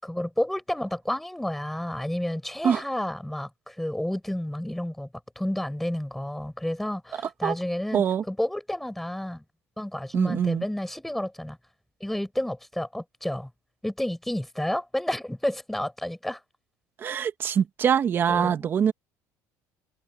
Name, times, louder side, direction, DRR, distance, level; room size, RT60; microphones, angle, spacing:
voice 1, 0.0-5.1 5.4-9.4 9.8-11.6 12.0-13.5 13.8-16.4 18.3-18.6, left 1 dB, 5° left, 7.1 m, -30 dB
voice 2, 7.9-8.2 10.1-10.6 17.0-18.9, right 8 dB, 35° right, 2.1 m, -24 dB
cardioid pair, 140°, 6 cm